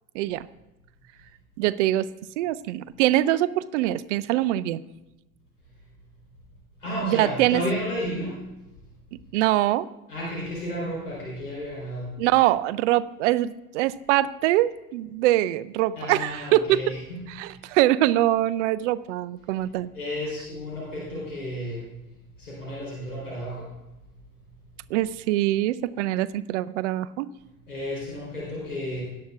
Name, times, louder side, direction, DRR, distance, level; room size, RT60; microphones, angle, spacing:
voice 1, 0.1-0.5 1.6-2.1 2.4-4.8 7.0-7.6 9.3-9.9 12.2-16.8 17.4-19.9 24.9-27.3, right 15 dB, 55° right, 17 dB, 0.5 m, -23 dB
voice 2, 6.8-8.4 10.1-12.1 15.9-17.6 19.9-21.9 22.4-23.7 27.7-29.0, equal, 80° left, -6 dB, 3.7 m, -32 dB
17.5 x 10.5 x 2.4 m, 0.99 s
figure-of-eight pair, 70°, 44 cm